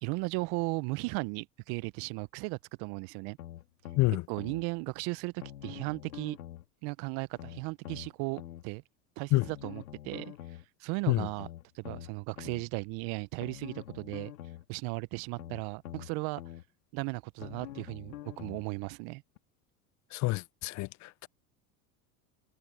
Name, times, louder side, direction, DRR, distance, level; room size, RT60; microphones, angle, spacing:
voice 1, 0.0-3.4 4.3-6.4 6.8-8.8 9.2-10.3 10.8-11.5 11.7-14.3 14.7-16.4 16.9-19.2, right 27 dB, 60° right, 0.9 m, -36 dB
sound 1, 3.4-4.6 5.4-6.7 7.4-8.6 9.4-10.6 11.4-12.6 13.4-14.6 15.4-16.6 17.4-18.7 19.4-19.5, left 13 dB, 85° left, 3.1 m, -45 dB
voice 2, 20.1-21.3, left 21 dB, 40° left, 0.5 m, -28 dB
hypercardioid pair, 90°, 43 cm